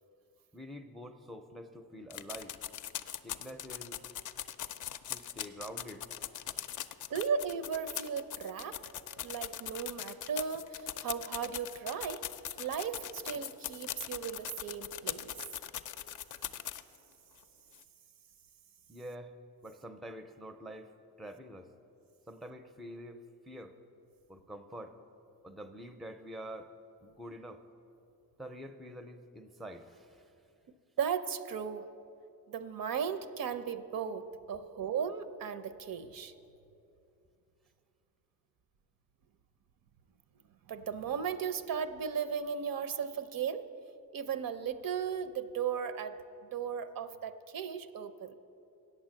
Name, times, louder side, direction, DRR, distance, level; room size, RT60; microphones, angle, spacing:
voice 1, 0.5-2.6 3.2-4.1 5.1-6.8 18.9-19.3 19.6-21.7 22.3-23.8 24.3-25.0 25.4-26.7 27.0-27.6 28.4-30.3, equal, ahead, 9 dB, 0.5 m, -47 dB
sound 1, 2.1-17.0 17.4-17.5 17.7-17.8, left 10 dB, 55° left, 0.4 m, -40 dB
voice 2, 7.1-8.8 9.2-12.2 12.6-15.3 31.0-31.9 32.5-36.3 40.7-43.7 44.1-46.2 46.5-48.3, right 7 dB, 65° right, 12 dB, 0.6 m, -36 dB
8.5 x 7.3 x 7.6 m, 2.7 s
cardioid pair, 90°, 37 cm